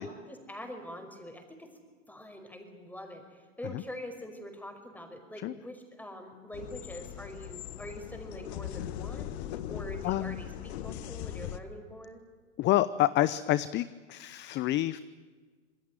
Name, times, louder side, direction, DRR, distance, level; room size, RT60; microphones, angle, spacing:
voice 1, 0.0-1.7 2.1-9.3 9.7-12.2, equal, 5° left, 5 dB, 5.2 m, -44 dB
sound 1, 6.5-11.6, left 11 dB, 60° left, 1.7 m, -40 dB
voice 2, 10.0-10.4 12.6-15.0, left 15 dB, 30° left, 17 dB, 0.7 m, -28 dB
26.0 x 20.5 x 9.1 m, 1.5 s
hypercardioid pair, 105°, 37 cm